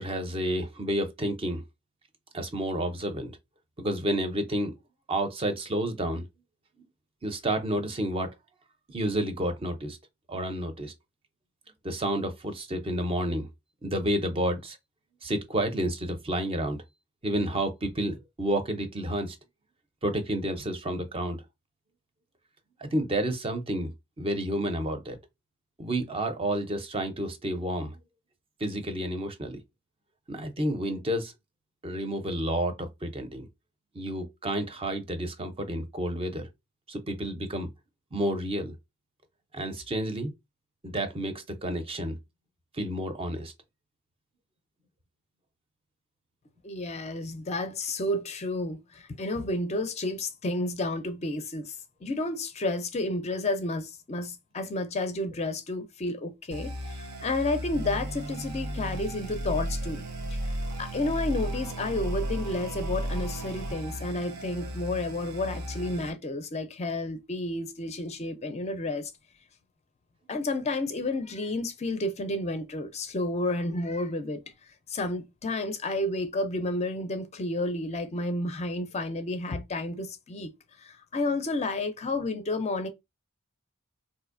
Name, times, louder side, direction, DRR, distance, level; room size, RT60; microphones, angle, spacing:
voice 1, 0.0-1.6 2.3-3.3 3.8-4.7 5.1-6.3 7.2-8.3 8.9-10.0 10.3-10.9 11.8-13.5 13.8-14.8 15.2-16.8 17.2-19.4 20.0-21.4 22.8-23.9 24.2-25.2 25.8-28.0 28.6-29.6 30.3-31.3 31.8-33.5 33.9-36.5 36.9-37.7 38.1-38.8 39.5-40.3 40.8-42.2 42.7-43.5, right 1 dB, 25° right, 0.5 m, -30 dB
voice 2, 46.6-51.8 52.0-60.0 60.3-60.4 60.8-69.1 70.3-74.4 74.9-80.5 80.8-82.9, left 2 dB, 30° left, 0.4 m, -31 dB
sound 1, 56.5-66.1, right 1 dB, 90° right, 0.9 m, -34 dB
4.0 x 2.6 x 2.5 m
head